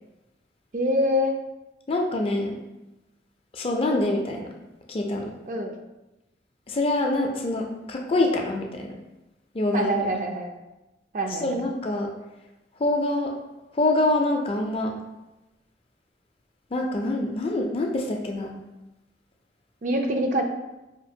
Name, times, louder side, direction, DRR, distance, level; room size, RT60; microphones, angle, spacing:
voice 1, 0.7-1.3 5.5-5.7 9.7-10.5 11.1-11.5 19.8-20.4, equal, 45° right, 4 dB, 0.4 m, -25 dB
voice 2, 1.9-2.6 3.5-4.5 4.9-5.3 6.7-8.9 9.5-9.9 11.4-12.1 12.8-13.3 13.8-14.9 16.7-18.6, left 2 dB, 30° left, 2 dB, 0.4 m, -25 dB
5.0 x 2.5 x 2.7 m, 0.99 s
head